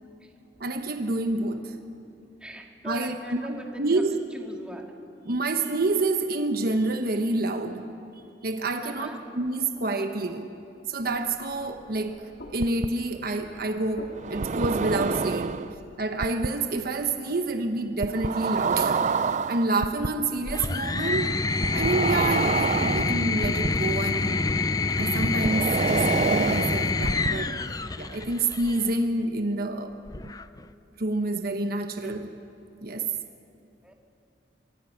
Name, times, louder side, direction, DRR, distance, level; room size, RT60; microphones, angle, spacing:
voice 1, 0.6-1.7 2.8-3.4 3.8-4.1 5.2-7.8 8.4-10.5 10.9-12.2 12.5-15.6 16.0-19.0 19.5-21.3 21.7-24.5 24.9-27.6 28.0-29.9 31.0-32.3 32.8-33.1, right 2 dB, 60° right, 6 dB, 1.2 m, -28 dB
voice 2, 2.4-4.0 4.3-4.9 8.8-9.2 15.2-15.4 33.8-33.9, right 1 dB, 5° right, 1 dB, 2.1 m, -42 dB
sound 1, 11.0-16.1, left 1 dB, 70° left, 2.4 m, -49 dB
sound 2, 12.6-12.9 14.2-15.7 16.2-16.5 18.0-20.1 21.6-23.7 25.2-27.3, right 5 dB, 45° right, 0.5 m, -27 dB
sound 3, 20.5-28.9 30.1-30.7, left 3 dB, 20° left, 0.5 m, -27 dB
25.0 x 24.5 x 5.8 m, 2.7 s
head